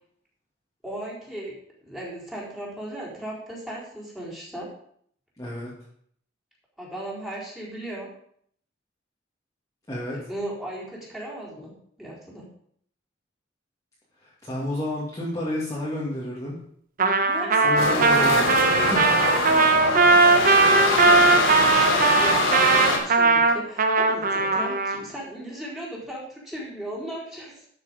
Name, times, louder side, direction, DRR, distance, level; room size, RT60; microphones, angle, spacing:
voice 1, 0.8-1.5 1.8-4.7 6.8-8.1 10.1-12.5 17.2-17.8 19.5-19.9 20.3-27.7, right 1 dB, ahead, -6 dB, 4.1 m, -36 dB
voice 2, 5.4-5.7 9.9-10.2 14.4-16.6 17.2-17.4 17.6-19.3, left 1 dB, 15° left, -7 dB, 2.4 m, -31 dB
Trumpet, 17.0-25.0, right 3 dB, 45° right, 1.0 m, -19 dB
sound 1, 17.8-23.0, left 2 dB, 75° left, 3.2 m, -23 dB
12.5 x 6.9 x 5.2 m, 0.64 s
head